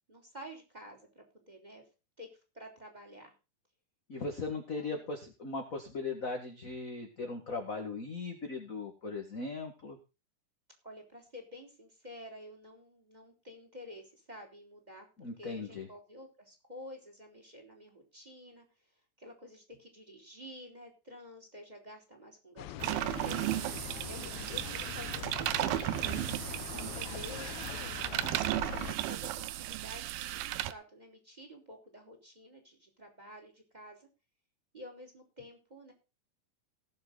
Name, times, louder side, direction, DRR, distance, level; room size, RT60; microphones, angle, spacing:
voice 1, 0.1-1.8 2.2-3.3 4.7-5.1 10.8-18.7 19.2-23.4 24.1-26.1 26.7-27.6 28.0-28.6 29.0-34.1 34.7-35.9, equal, 10° right, 4 dB, 3.8 m, -50 dB
voice 2, 4.1-10.0 15.2-15.9, left 3 dB, 35° left, 3 dB, 1.3 m, -38 dB
sound 1, 22.6-29.0, left 14 dB, 85° left, 2.6 m, -43 dB
sound 2, 22.8-30.7, right 15 dB, 90° right, 2.7 m, -35 dB
18.5 x 7.6 x 4.0 m, 0.31 s
omnidirectional pair, 4.1 m